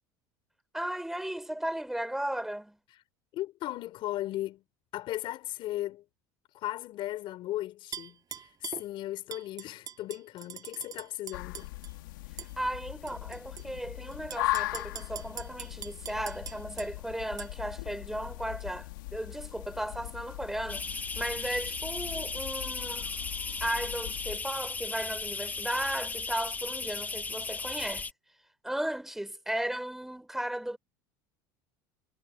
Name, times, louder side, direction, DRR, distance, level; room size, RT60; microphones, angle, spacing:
voice 1, 0.7-2.8 12.6-20.9 21.1-23.1 23.6-28.1 28.6-30.8, right 1 dB, 5° right, 4.6 m, -35 dB
voice 2, 3.3-4.6 4.9-6.0 6.5-11.7, left 15 dB, 55° left, 4.0 m, -36 dB
Tap / Glass, 7.9-8.8 9.3-11.9 12.4-12.5 13.1-13.6 14.1-16.9 17.4-17.5, right 9 dB, 35° right, 7.6 m, -42 dB
sound 1, 11.3-24.4, left 18 dB, 85° left, 1.9 m, -39 dB
sound 2, 20.7-28.1, left 4 dB, 15° left, 2.0 m, -36 dB
supercardioid pair, 110°, 10 cm